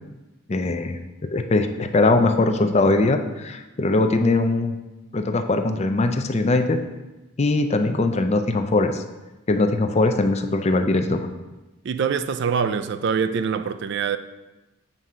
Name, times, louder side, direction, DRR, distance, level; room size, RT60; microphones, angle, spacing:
voice 1, 0.5-4.8 5.1-6.8 7.4-9.0 9.5-11.3, left 2 dB, 30° left, 0.4 m, -21 dB
voice 2, 11.8-14.2, right 6 dB, 55° right, 0.3 m, -24 dB
7.6 x 3.7 x 5.5 m
head